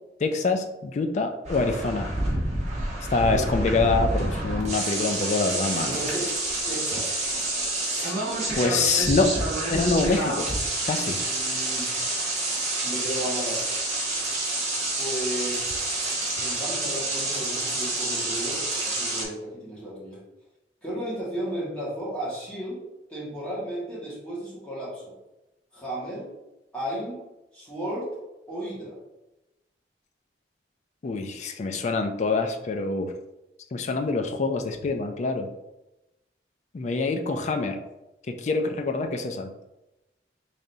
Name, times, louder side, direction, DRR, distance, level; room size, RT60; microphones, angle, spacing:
voice 1, 0.2-2.1 3.1-6.0 7.9-8.0 8.6-9.3 9.7-10.5 10.9-11.2 31.0-33.1 33.7-35.5 36.7-37.8 38.3-39.5, left 3 dB, 40° left, 6 dB, 0.3 m, -25 dB
sound 1, 1.4-19.2, right 2 dB, 40° right, 0.9 m, -28 dB
voice 2, 5.9-6.3 6.7-7.2 11.1-11.9 12.8-13.6 15.0-15.8 16.3-20.2 20.8-22.8 23.1-25.1 25.7-26.3 26.7-27.2 27.5-28.1 28.5-29.0, equal, 5° left, -8 dB, 1.5 m, -34 dB
3.8 x 3.3 x 2.6 m, 0.95 s
head